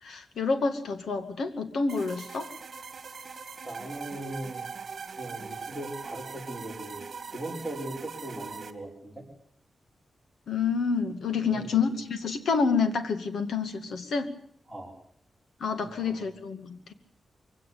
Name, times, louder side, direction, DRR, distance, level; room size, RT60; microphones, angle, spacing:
voice 1, 0.0-2.5 10.5-14.3 15.6-16.9, left 5 dB, 75° left, 8 dB, 2.2 m, -28 dB
sound 1, 1.9-8.7, right 5 dB, 40° right, 2.1 m, -41 dB
voice 2, 3.6-4.7 5.2-7.0 7.3-9.3 11.3-11.8 14.7-14.9 16.1-16.2, right 1 dB, 5° left, 0 dB, 5.9 m, -39 dB
23.0 x 17.0 x 8.5 m, 0.63 s
wide cardioid pair, 175°, 0 cm